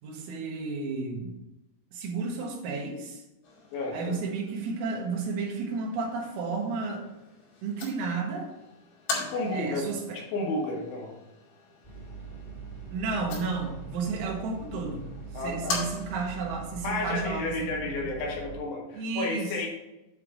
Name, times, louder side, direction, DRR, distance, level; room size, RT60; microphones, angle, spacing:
voice 1, 0.0-1.3 1.9-3.2 3.9-7.0 7.6-8.5 9.5-10.2 12.9-15.0 15.4-18.1 18.9-19.5, right 4 dB, 80° right, 0 dB, 3.9 m, -32 dB
sound 1, 3.4-16.4, left 3 dB, 60° left, 4.1 m, -41 dB
voice 2, 3.7-4.2 9.2-9.9 10.1-11.1 15.3-15.8 16.8-19.7, left 2 dB, 80° left, -2 dB, 3.9 m, -32 dB
sound 2, 11.8-18.6, right 5 dB, 25° left, 0.9 m, -42 dB
9.5 x 3.4 x 6.2 m, 0.95 s
omnidirectional pair, 5.5 m